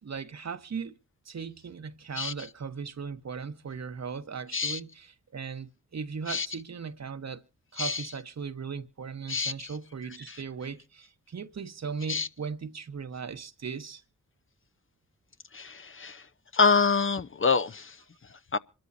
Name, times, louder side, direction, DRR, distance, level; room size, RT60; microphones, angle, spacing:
voice 1, 0.0-1.0 1.2-5.1 5.3-7.4 7.7-14.0, right 5 dB, 55° right, 1.2 m, -38 dB
voice 2, 9.3-9.7 10.3-10.4 12.1-12.3 15.5-16.3 16.5-18.6, left 5 dB, 40° left, 0.8 m, -27 dB
26.0 x 13.0 x 2.7 m
supercardioid pair, 45°, 32 cm